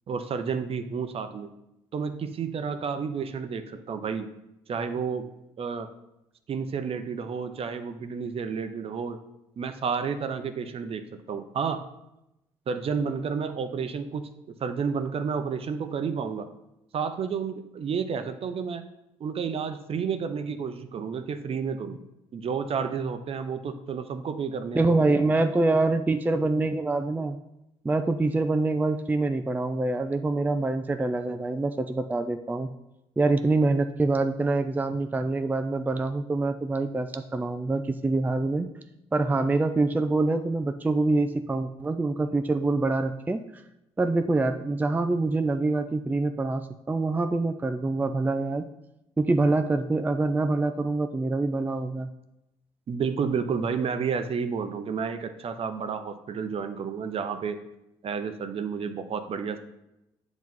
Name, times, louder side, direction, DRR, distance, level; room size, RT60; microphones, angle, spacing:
voice 1, 0.1-1.5 1.9-4.3 4.7-5.3 5.6-5.9 6.5-9.2 9.6-11.8 12.7-14.3 14.6-16.5 16.9-18.9 19.2-22.0 22.3-24.9 52.9-57.6 58.0-59.6, right 6 dB, 50° right, 9 dB, 0.7 m, -31 dB
voice 2, 24.7-27.4 27.8-32.7 33.2-38.7 39.1-43.6 44.0-48.6 49.2-52.1, right 2 dB, 15° right, 9 dB, 0.4 m, -25 dB
7.4 x 3.0 x 5.4 m, 0.89 s
supercardioid pair, 65°, 12 cm